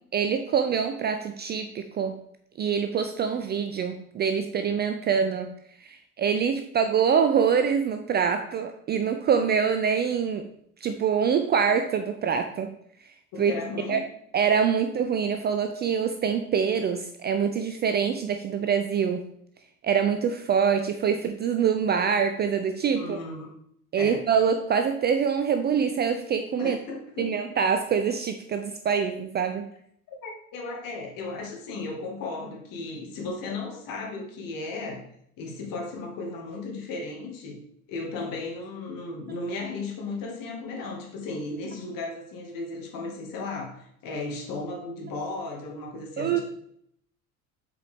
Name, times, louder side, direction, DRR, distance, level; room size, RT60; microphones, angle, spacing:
voice 1, 0.1-2.2 2.6-5.5 5.8-10.5 10.8-12.7 13.4-13.5 13.9-14.0 14.3-19.3 19.8-23.2 23.9-26.8 27.2-29.7 46.2-46.4, right 7 dB, 25° right, 7 dB, 0.4 m, -25 dB
voice 2, 13.3-14.1 23.0-23.5 24.0-24.2 26.6-27.3 30.2-35.1 35.4-37.6 37.9-46.4, left 3 dB, 50° left, 0 dB, 1.9 m, -35 dB
7.3 x 4.7 x 3.4 m, 0.69 s
figure-of-eight pair, 70°, 44 cm